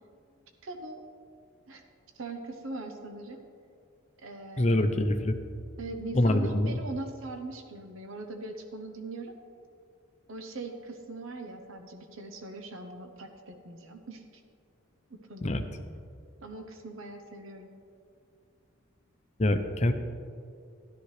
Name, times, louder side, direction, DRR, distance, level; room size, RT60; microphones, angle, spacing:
voice 1, 0.6-1.0 1.7-1.8 2.1-3.4 4.2-4.9 5.8-9.4 10.3-14.4 15.1-15.6 16.4-17.7, right 2 dB, 70° right, 5 dB, 0.8 m, -41 dB
voice 2, 4.6-5.4 6.1-6.7 15.4-15.6 19.4-19.9, left 1 dB, 30° left, 7 dB, 0.7 m, -25 dB
13.5 x 12.0 x 3.3 m, 2.4 s
head